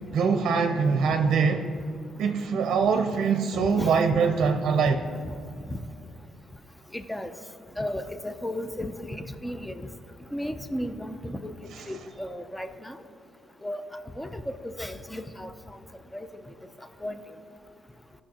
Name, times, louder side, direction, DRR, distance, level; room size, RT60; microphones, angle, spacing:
voice 1, 0.1-1.7 2.2-5.0, right 5 dB, 70° right, 6 dB, 0.6 m, -23 dB
voice 2, 3.5-4.0 6.9-7.3 7.8-9.9 10.3-11.5 11.9-13.0 13.6-13.8 14.2-15.5 16.1-16.3 17.0-17.2, left 1 dB, 10° left, 9 dB, 0.6 m, -34 dB
15.0 x 6.5 x 2.9 m, 2.5 s
cardioid pair, 90°, 0 cm